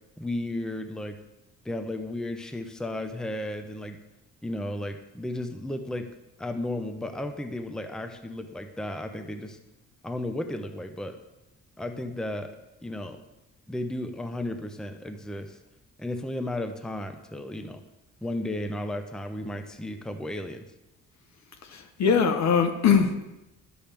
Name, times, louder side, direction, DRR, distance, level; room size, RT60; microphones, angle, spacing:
voice 1, 0.2-1.2 1.6-4.0 4.4-6.1 6.4-9.6 10.0-11.2 11.8-12.6 12.8-13.2 13.7-15.6 16.0-17.8 18.2-20.6, left 1 dB, ahead, 7 dB, 0.6 m, -34 dB
voice 2, 21.6-23.2, left 6 dB, 65° left, 6 dB, 1.0 m, -22 dB
10.0 x 7.1 x 3.4 m, 0.96 s
cardioid pair, 90°, 30 cm